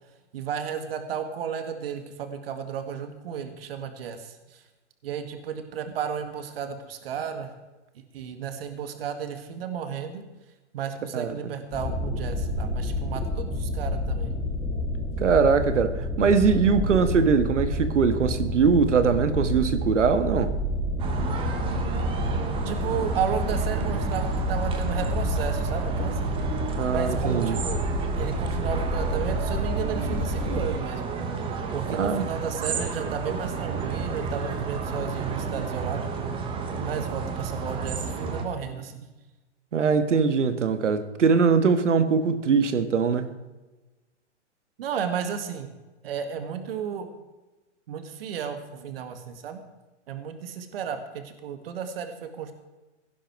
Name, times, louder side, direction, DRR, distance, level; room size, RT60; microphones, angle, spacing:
voice 1, 0.3-4.6 5.0-7.5 8.1-10.2 10.7-14.3 22.7-26.2 26.9-27.8 28.2-31.0 31.7-36.1 36.8-39.1 44.8-45.7 46.0-47.1 47.9-49.6 50.1-52.5, right 7 dB, 55° right, 2.0 m, -33 dB
sound 1, 11.7-30.7, equal, 10° left, 2.3 m, -29 dB
voice 2, 15.2-20.5 26.8-27.6 31.9-32.2 39.7-43.3, right 5 dB, 90° right, 1.6 m, -22 dB
sound 2, 21.0-38.4, right 5 dB, 15° right, 1.2 m, -31 dB
16.0 x 11.5 x 4.7 m
hypercardioid pair, 155°, 35 cm